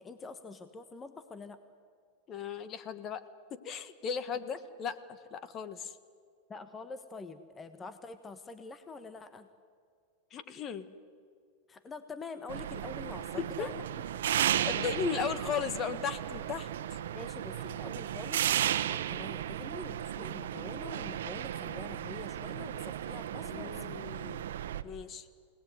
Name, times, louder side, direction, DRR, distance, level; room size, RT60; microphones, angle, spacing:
voice 1, 0.0-1.6 6.5-9.5 11.7-13.8 17.1-24.0, left 4 dB, 20° left, 10 dB, 1.3 m, -46 dB
voice 2, 2.3-3.2 3.5-6.0 10.3-10.9 13.4-13.7 14.7-17.0 23.4-24.4 24.8-25.3, left 7 dB, 35° left, 13 dB, 1.6 m, -36 dB
sound 1, 12.5-24.8, right 11 dB, 80° right, 1.2 m, -34 dB
28.0 x 19.0 x 9.5 m, 2.2 s
hypercardioid pair, 120°, 0 cm